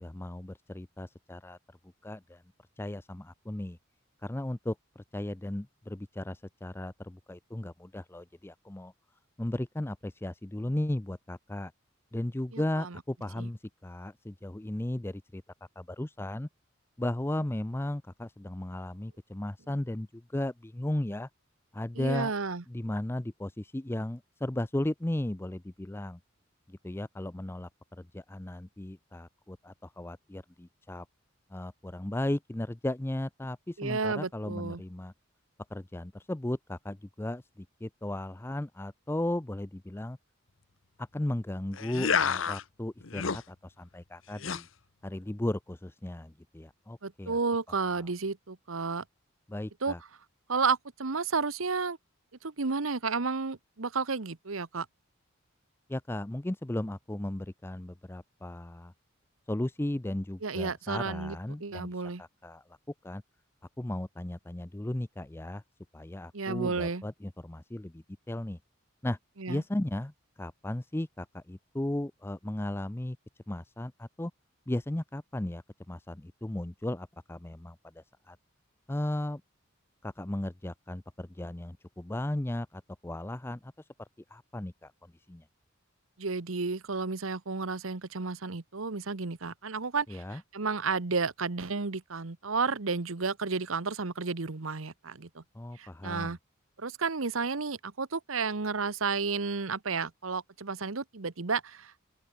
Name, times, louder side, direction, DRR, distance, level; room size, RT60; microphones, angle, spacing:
voice 1, 0.0-1.6 2.0-2.4 2.8-3.8 4.2-8.9 9.4-11.7 12.1-15.4 15.8-16.5 17.0-21.3 21.7-22.3 22.7-26.2 26.7-27.7 28.0-31.1 31.5-35.1 35.7-40.2 41.0-44.7 45.0-47.4 49.5-50.0 55.9-58.9 59.5-61.9 62.2-62.6 63.0-63.2 63.8-65.6 65.9-68.6 69.0-69.2 69.5-70.1 70.4-73.2 73.5-74.3 74.7-75.6 75.9-78.4 78.9-79.4 80.0-83.7 84.0-84.9 85.3-85.4 90.1-90.4 95.5-96.3, left 1 dB, 10° left, 0.5 m, -35 dB
voice 2, 12.5-13.0 13.4-13.5 22.0-22.6 33.8-34.8 47.0-49.0 49.8-49.9 50.5-52.0 52.4-54.9 60.4-62.2 66.3-67.0 69.4-69.6 86.2-95.4 95.8-96.4 96.8-102.0, right 4 dB, 80° right, 1.1 m, -32 dB
sound 1, 41.7-42.6 43.0-43.4 44.4-44.6, left 6 dB, 70° left, 1.0 m, -29 dB
open air
head